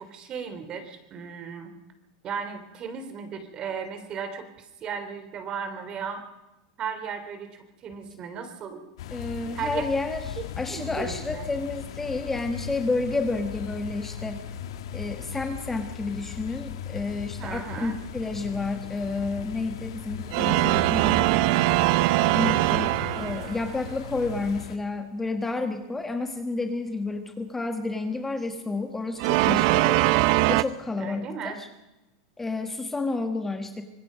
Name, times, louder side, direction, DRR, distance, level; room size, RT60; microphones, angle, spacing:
voice 1, 0.0-1.7 2.2-6.2 6.8-8.8 9.5-9.8 10.4-11.5 17.4-18.0 31.0-31.6, right 6 dB, 35° right, 8 dB, 3.5 m, -36 dB
sound 1, 9.0-24.8, left 10 dB, 80° left, 1.7 m, -38 dB
voice 2, 9.1-14.4 14.9-21.3 22.3-30.0 30.5-31.7 32.4-33.8, left 3 dB, 10° left, 6 dB, 1.5 m, -30 dB
sound 2, 20.3-23.7 29.2-30.6, right 18 dB, 60° right, 0.7 m, -22 dB
25.0 x 20.0 x 5.3 m, 0.99 s
supercardioid pair, 130°, 3 cm